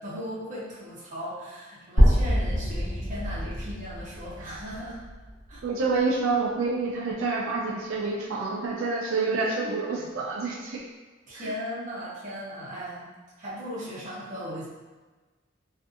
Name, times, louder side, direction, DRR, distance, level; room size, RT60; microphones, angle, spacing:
voice 1, 0.0-5.0 5.5-5.6 9.4-10.1 11.3-13.1 13.4-14.7, equal, 40° right, -7 dB, 0.7 m, -37 dB
sound 1, 2.0-5.9, equal, 85° left, 1.0 m, -25 dB
voice 2, 5.6-10.8 11.3-11.5, right 3 dB, 80° right, -3 dB, 0.4 m, -28 dB
2.5 x 2.5 x 2.5 m, 1.3 s
head